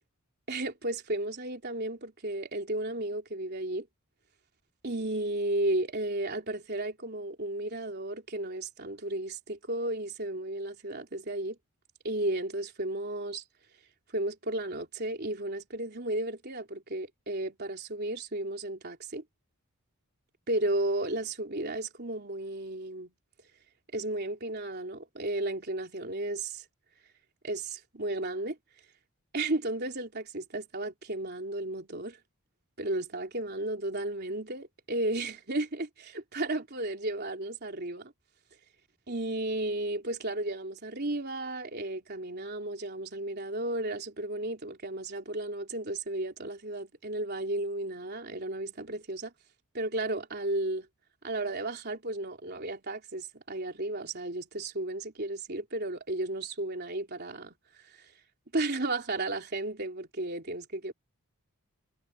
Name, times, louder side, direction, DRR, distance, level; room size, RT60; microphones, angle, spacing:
voice 1, 0.5-3.9 4.8-11.6 12.0-13.4 14.1-19.2 20.5-23.1 23.9-26.6 27.4-28.6 29.3-32.2 32.8-38.1 39.1-49.3 49.7-50.9 51.2-58.1 58.5-60.9, right 2 dB, 45° right, 3.6 m, -34 dB
head